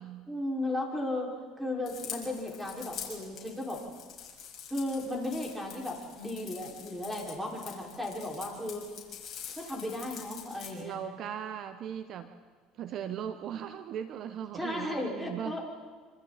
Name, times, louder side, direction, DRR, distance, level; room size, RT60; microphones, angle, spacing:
voice 1, 0.3-3.8 4.7-8.9 9.5-11.0 14.5-15.6, left 1 dB, 5° right, -2 dB, 5.5 m, -35 dB
sound 1, 1.9-10.7, left 8 dB, 45° left, 6.5 m, -45 dB
voice 2, 10.8-12.3 12.8-15.6, right 9 dB, 55° right, 10 dB, 1.0 m, -38 dB
27.0 x 26.5 x 4.3 m, 1.5 s
supercardioid pair, 100°, 0 cm